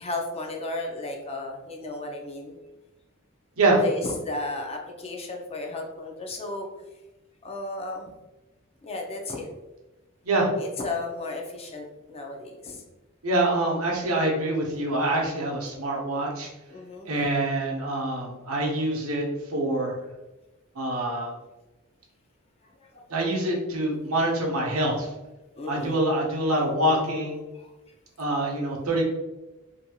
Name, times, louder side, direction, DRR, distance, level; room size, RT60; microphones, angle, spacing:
voice 1, 0.0-2.6 3.8-6.7 7.4-8.1 8.8-9.5 10.6-12.8 16.7-17.3 22.8-23.1 25.6-26.0 27.5-27.7, left 2 dB, 30° left, 1 dB, 0.4 m, -34 dB
voice 2, 13.2-16.5 17.1-20.0 20.7-21.3 23.1-25.1 25.7-27.4 28.2-29.0, right 1 dB, 85° right, -1 dB, 0.7 m, -25 dB
2.9 x 2.6 x 2.3 m, 1.1 s
head